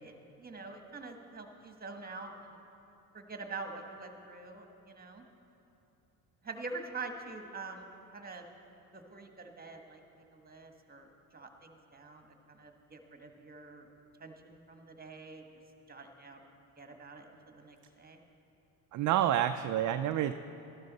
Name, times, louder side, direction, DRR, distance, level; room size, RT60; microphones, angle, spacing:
voice 1, 0.0-2.6 3.1-5.2 6.4-7.9 8.1-8.4 8.9-11.1 11.3-13.9 14.2-15.4 15.9-16.4 16.8-18.2, right 3 dB, 20° right, 5 dB, 1.4 m, -46 dB
voice 2, 18.9-20.3, right 11 dB, 45° right, 9 dB, 0.5 m, -28 dB
13.0 x 12.0 x 4.1 m, 2.9 s
supercardioid pair, 70°, 41 cm